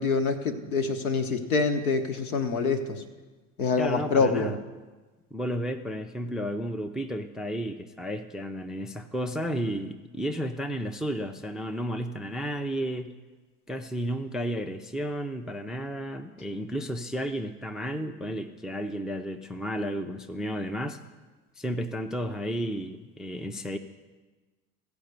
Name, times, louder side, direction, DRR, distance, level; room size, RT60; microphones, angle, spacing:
voice 1, 0.0-3.0 3.6-4.5, left 4 dB, 80° left, 7 dB, 1.1 m, -26 dB
voice 2, 3.8-4.6 5.3-13.1 13.7-21.0 21.6-23.8, equal, ahead, 7 dB, 0.4 m, -32 dB
15.0 x 5.2 x 6.7 m, 1.3 s
figure-of-eight pair, 75°, 43 cm